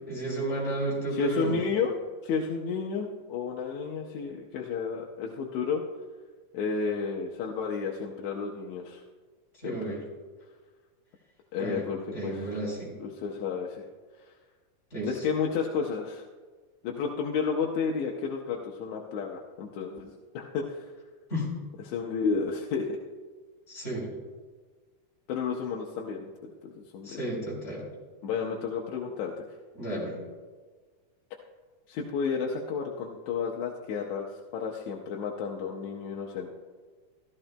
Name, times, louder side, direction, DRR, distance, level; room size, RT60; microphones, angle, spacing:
voice 1, 0.1-1.6 9.6-10.0 11.5-11.8 12.1-13.0 14.9-15.2 21.3-21.5 23.7-24.1 27.0-27.8 29.7-30.2, right 2 dB, 20° left, -5 dB, 4.0 m, -32 dB
voice 2, 1.1-2.0 2.2-5.8 6.5-9.0 9.6-10.0 11.5-12.5 13.0-13.8 15.0-16.2 16.8-20.9 21.8-22.9 25.3-27.3 28.2-29.5 31.9-36.5, left 5 dB, 75° left, 0 dB, 2.0 m, -32 dB
14.5 x 13.0 x 2.2 m, 1.4 s
omnidirectional pair, 3.5 m